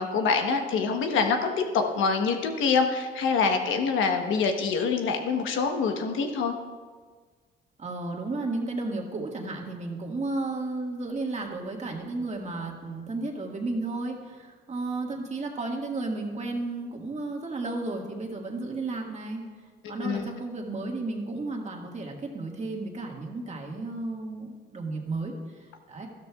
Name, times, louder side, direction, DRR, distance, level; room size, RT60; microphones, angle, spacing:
voice 1, 0.0-6.5 19.8-20.3, left 5 dB, 80° left, 4 dB, 1.1 m, -25 dB
voice 2, 7.8-19.4 19.9-26.1, right 2 dB, 35° right, 1 dB, 1.8 m, -33 dB
13.5 x 12.5 x 2.4 m, 1.5 s
cardioid pair, 90°, 20 cm